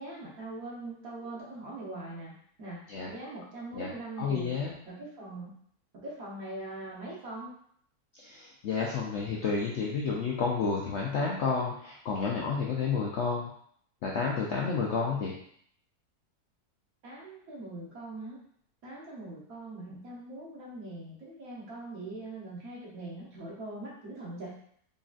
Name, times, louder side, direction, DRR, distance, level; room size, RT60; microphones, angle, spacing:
voice 1, 0.0-2.3 2.6-2.8 3.1-4.5 4.9-5.6 5.9-7.6 17.0-18.4 18.8-24.6, right 2 dB, 65° right, -5 dB, 1.5 m, -42 dB
voice 2, 4.2-4.7 8.1-13.5 14.0-15.3, left 5 dB, 70° left, -3 dB, 0.6 m, -30 dB
3.9 x 3.1 x 2.4 m, 0.64 s
omnidirectional pair, 1.7 m